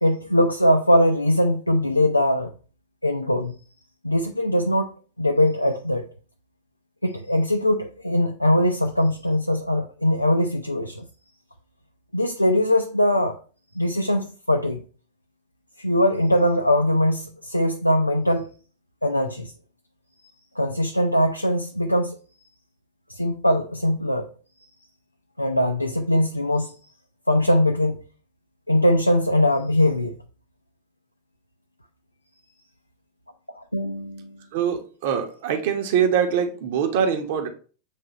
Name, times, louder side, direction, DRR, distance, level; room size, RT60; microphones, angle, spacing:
voice 1, 0.0-2.5 3.0-3.5 4.0-4.9 5.2-6.1 7.0-11.1 12.1-13.4 13.7-14.8 15.8-18.5 19.0-19.5 20.6-22.2 23.1-24.3 25.4-26.7 27.3-28.0 28.7-30.2 33.5-34.4, left 1 dB, 85° left, 0.5 m, -21 dB
voice 2, 34.5-37.5, right 8 dB, 50° right, 1.0 m, -23 dB
7.4 x 3.2 x 4.1 m
figure-of-eight pair, 90°, 0 cm